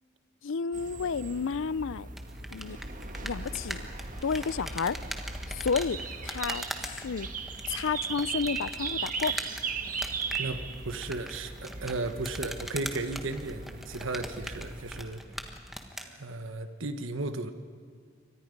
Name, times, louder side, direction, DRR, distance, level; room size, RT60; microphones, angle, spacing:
voice 1, 0.4-2.1 2.5-2.8 3.2-3.8 4.2-5.0 5.5-6.0 6.2-7.3 7.7-9.3, left 5 dB, 75° left, 19 dB, 0.5 m, -31 dB
sound 1, 0.7-15.0, right 4 dB, 40° right, 1.6 m, -38 dB
sound 2, 2.1-16.1, equal, ahead, 1.4 m, -41 dB
voice 2, 10.4-15.2 16.0-17.5, right 2 dB, 80° right, 8 dB, 1.3 m, -35 dB
29.0 x 24.5 x 5.3 m, 2.1 s
head